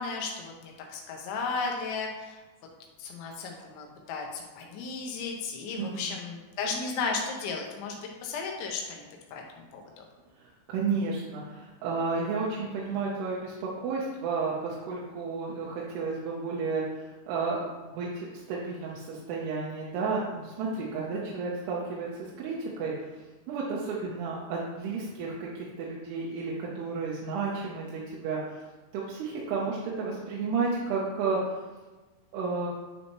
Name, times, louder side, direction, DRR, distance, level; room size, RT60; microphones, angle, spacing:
voice 1, 0.0-2.4 3.0-8.0 8.2-10.0, left 4 dB, 85° left, 0 dB, 3.2 m, -35 dB
voice 2, 5.8-6.1 10.4-22.9 23.5-28.7 28.9-31.6 32.3-32.7, right 4 dB, 75° right, -5 dB, 2.6 m, -32 dB
9.9 x 4.2 x 3.0 m, 1.2 s
omnidirectional pair, 5.2 m